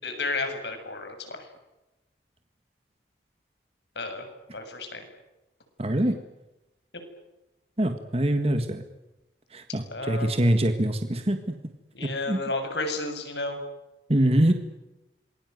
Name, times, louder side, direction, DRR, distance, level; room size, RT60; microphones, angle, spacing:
voice 1, 0.0-1.5 4.0-4.3 4.5-5.0 9.9-10.4 11.9-13.6, left 3 dB, 80° left, 6 dB, 7.3 m, -32 dB
voice 2, 5.8-6.2 7.8-8.8 9.5-11.6 12.3-12.4 14.1-14.5, right 1 dB, 35° right, 7 dB, 1.8 m, -24 dB
27.0 x 22.0 x 9.5 m, 1.0 s
head